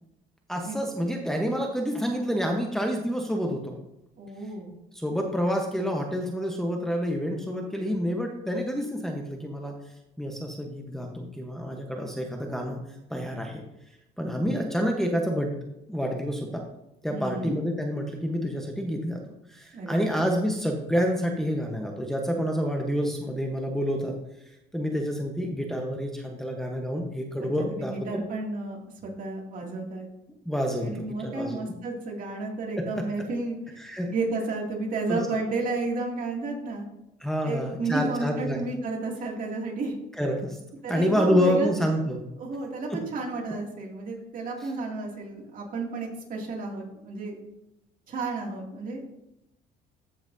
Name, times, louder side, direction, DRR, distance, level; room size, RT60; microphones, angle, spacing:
voice 1, 0.5-3.8 4.9-9.7 10.2-12.8 13.1-13.6 14.2-15.6 15.9-16.6 17.0-19.2 19.5-24.1 24.7-28.2 30.4-31.6 32.8-33.3 33.8-34.1 35.1-35.2 37.2-38.6 40.2-40.6 40.8-42.2 42.9-43.0, equal, ahead, 1 dB, 1.1 m, -28 dB
voice 2, 4.2-4.7 17.1-17.6 19.7-20.2 27.4-30.1 30.8-36.8 37.4-39.9 40.8-41.7 42.4-47.4 48.1-49.0, right 3 dB, 55° right, -1 dB, 2.6 m, -32 dB
14.0 x 5.9 x 2.8 m, 0.86 s
cardioid pair, 110°, 17 cm